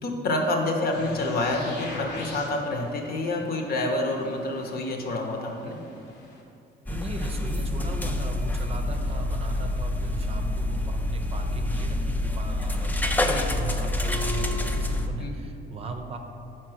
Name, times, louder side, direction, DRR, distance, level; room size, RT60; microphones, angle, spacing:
voice 1, 0.0-5.8 13.2-13.5 15.2-15.4, left 2 dB, 60° left, 2 dB, 1.0 m, -28 dB
sound 1, 0.9-6.4, left 3 dB, 85° left, 1.3 m, -42 dB
sound 2, 6.9-15.1, left 2 dB, 10° left, 0.4 m, -27 dB
voice 2, 6.9-16.2, right 4 dB, 35° right, 5 dB, 0.6 m, -38 dB
5.8 x 4.5 x 6.2 m, 2.5 s
cardioid pair, 130°, 18 cm